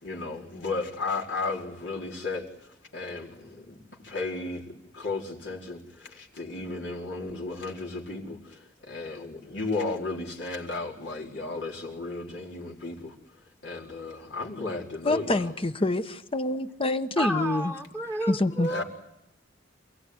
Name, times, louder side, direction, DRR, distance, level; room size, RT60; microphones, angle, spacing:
voice 1, 0.0-2.4 2.9-3.7 4.0-4.6 4.9-8.6 8.9-13.1 13.6-15.5 18.7-18.8, left 3 dB, 70° left, 4.6 m, -34 dB
voice 2, 15.0-17.7 18.3-18.7, left 2 dB, 30° left, 1.1 m, -26 dB
voice 3, 17.2-18.8, right 1 dB, 10° left, 1.5 m, -31 dB
28.5 x 17.0 x 9.8 m
head